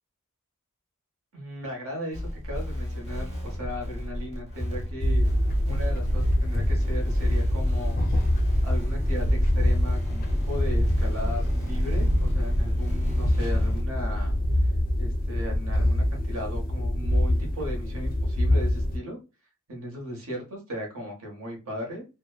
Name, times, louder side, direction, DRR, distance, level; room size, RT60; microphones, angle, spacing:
voice 1, 1.3-5.3 5.7-8.0 8.6-14.3 15.0-19.2 19.7-22.0, equal, 65° right, 1 dB, 1.0 m, -37 dB
sound 1, 2.1-13.8, equal, 30° right, 1.1 m, -31 dB
sound 2, 5.0-19.0, left 1 dB, 40° left, 0.4 m, -25 dB
2.9 x 2.0 x 2.3 m, 0.30 s
head